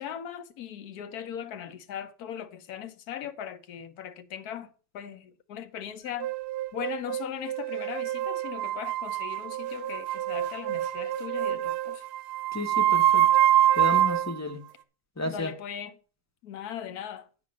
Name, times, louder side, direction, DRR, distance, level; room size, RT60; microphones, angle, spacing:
voice 1, 0.0-4.7 4.9-6.3 6.7-12.0 15.2-16.0 16.4-17.3, left 9 dB, 70° left, 1.4 m, -39 dB
sound 1, 6.2-14.4, right 12 dB, 85° right, 1.3 m, -26 dB
voice 2, 12.5-13.3 13.7-14.6 15.2-15.5, left 2 dB, 15° left, 0.7 m, -32 dB
9.0 x 5.9 x 6.4 m
omnidirectional pair, 1.7 m